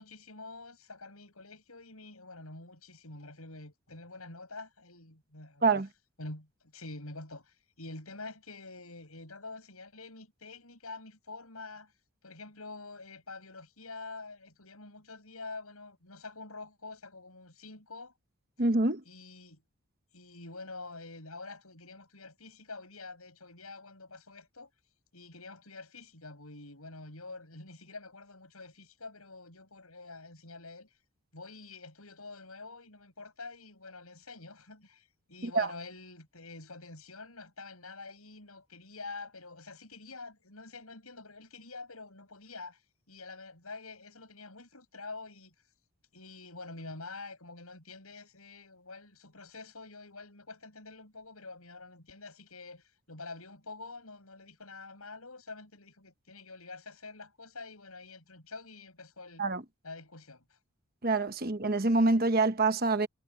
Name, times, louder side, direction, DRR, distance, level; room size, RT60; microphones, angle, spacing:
voice 1, 0.0-5.6 6.2-11.9 12.2-18.1 19.0-19.6 20.1-24.7 25.1-30.9 31.3-42.8 43.1-45.5 46.1-59.5 59.8-60.6, left 3 dB, 80° left, 7.7 m, -47 dB
voice 2, 18.6-19.0 35.6-35.7 59.4-59.6 61.0-63.1, right 3 dB, 45° right, 1.2 m, -26 dB
head